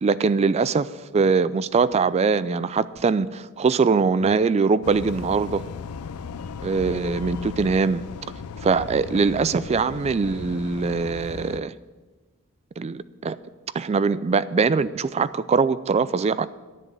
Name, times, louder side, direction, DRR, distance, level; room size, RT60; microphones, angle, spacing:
voice 1, 0.0-5.6 6.6-8.0 8.6-11.7 12.8-13.4 13.7-16.5, right 4 dB, 30° right, 16 dB, 0.3 m, -22 dB
sound 1, 4.8-11.6, left 5 dB, 85° left, 0.4 m, -37 dB
11.0 x 7.6 x 6.7 m, 1.3 s
head